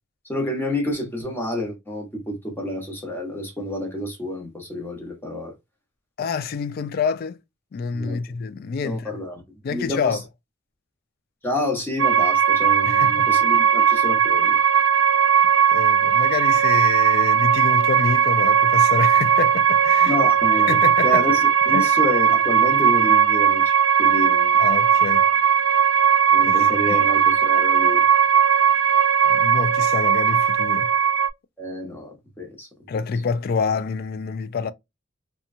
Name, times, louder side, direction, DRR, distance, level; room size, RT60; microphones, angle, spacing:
voice 1, 0.3-5.5 7.9-8.2 8.8-9.4 9.7-10.2 11.4-14.6 20.1-20.8 21.0-24.6 26.3-28.0 31.6-32.7, left 1 dB, 10° left, 1.0 m, -29 dB
voice 2, 6.2-7.4 7.7-9.2 9.6-10.2 12.9-13.3 15.7-20.2 20.7-21.3 21.7-21.9 24.6-25.3 26.4-27.0 29.3-30.9 32.9-34.7, left 5 dB, 50° left, 0.3 m, -27 dB
sound 1, 12.0-31.3, right 8 dB, 75° right, 0.4 m, -18 dB
2.8 x 2.2 x 2.5 m
head